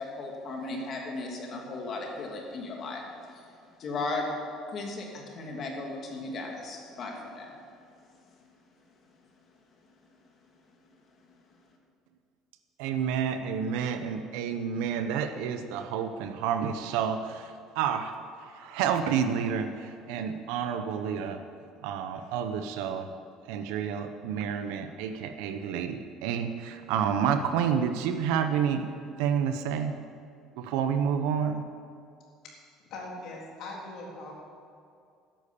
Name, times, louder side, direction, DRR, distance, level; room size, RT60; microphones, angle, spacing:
voice 1, 0.0-4.2 4.7-7.6, left 3 dB, 40° left, 0 dB, 2.5 m, -36 dB
voice 2, 12.8-18.1 18.4-21.4 21.8-23.1 23.5-28.9 29.2-30.0 30.6-31.6, right 7 dB, 90° right, 8 dB, 0.9 m, -29 dB
voice 3, 32.9-34.3, left 2 dB, 55° left, -2 dB, 3.8 m, -40 dB
13.0 x 10.5 x 7.0 m, 2.4 s
cardioid pair, 145°, 0 cm